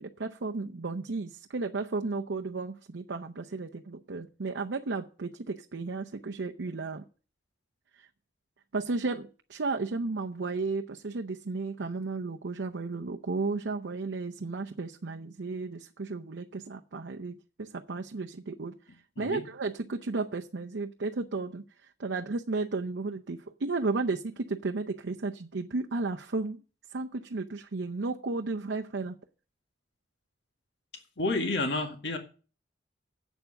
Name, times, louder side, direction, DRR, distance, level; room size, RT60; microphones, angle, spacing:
voice 1, 0.0-7.0 8.0-8.1 8.7-18.8 19.2-26.6 26.9-29.2, right 3 dB, 80° right, 0.7 m, -34 dB
voice 2, 31.2-32.2, left 2 dB, 70° left, 1.9 m, -30 dB
8.1 x 7.0 x 7.9 m
head